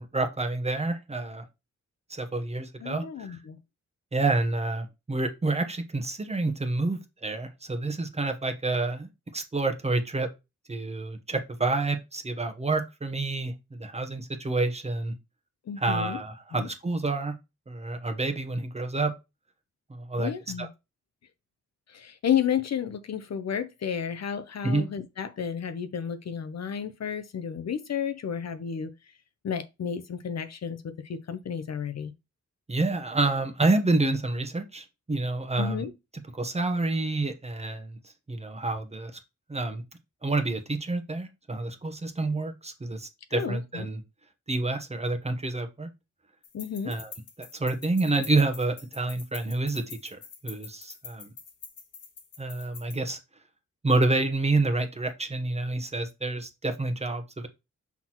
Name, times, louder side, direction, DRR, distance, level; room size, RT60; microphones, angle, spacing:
voice 1, 0.0-1.4 2.1-3.4 4.1-10.3 10.7-15.1 15.8-17.3 17.7-19.1 19.9-20.3 20.6-20.7 24.6-24.9 32.7-35.8 36.3-38.0 38.3-39.1 39.5-39.8 40.2-44.0 44.5-45.9 46.8-47.1 47.4-51.3 52.4-53.2 53.8-57.5, right 2 dB, 20° right, 1.0 m, -28 dB
voice 2, 2.8-3.6 15.7-16.2 16.6-16.7 20.2-20.7 21.9-28.9 29.4-32.1 35.6-35.9 43.3-43.9 46.5-46.9, left 8 dB, 60° left, 0.8 m, -32 dB
sound 1, 46.4-53.1, left 5 dB, 90° left, 1.4 m, -46 dB
5.9 x 5.9 x 3.0 m
wide cardioid pair, 150°, 30 cm